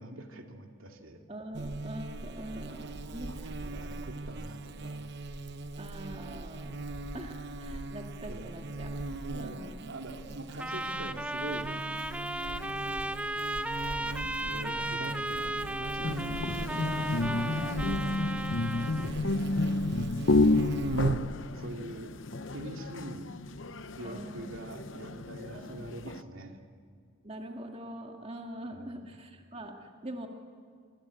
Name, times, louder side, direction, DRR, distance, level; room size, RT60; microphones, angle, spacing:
voice 1, 0.0-1.3 2.7-3.4 3.6-5.1 7.7-7.9 8.3-8.5 9.1-11.8 12.4-13.2 14.0-16.8 17.5-18.3 19.0-19.4 20.4-21.0 21.5-22.1 22.5-23.3 24.0-26.6 28.7-29.1, right 1 dB, 75° right, 3 dB, 2.6 m, -44 dB
voice 2, 1.3-3.5 4.0-4.2 5.8-6.8 7.1-9.0 9.4-9.8 17.2-18.7 19.0-19.4 21.5-21.8 24.0-24.6 25.5-25.9 27.2-30.3, right 1 dB, 30° right, 2 dB, 2.2 m, -44 dB
Buzz, 1.5-21.3, right 2 dB, 55° right, 0.9 m, -39 dB
Trumpet, 10.6-19.2, right 1 dB, 5° right, 0.7 m, -35 dB
sound 1, 16.0-26.2, left 2 dB, 65° left, 0.8 m, -31 dB
26.0 x 25.5 x 8.6 m, 2.2 s
head